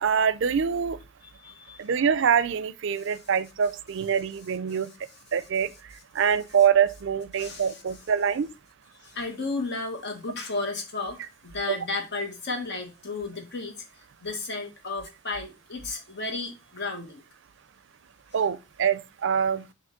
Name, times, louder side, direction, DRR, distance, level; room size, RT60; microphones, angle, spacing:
voice 1, 0.0-1.0 1.8-4.9 5.3-5.7 6.1-8.5 11.7-11.8 18.3-19.6, right 7 dB, 60° right, 0.4 m, -24 dB
voice 2, 1.3-2.0 3.0-3.1 7.4-8.0 9.0-17.2, left 3 dB, 60° left, 1.8 m, -34 dB
7.0 x 3.0 x 5.8 m
head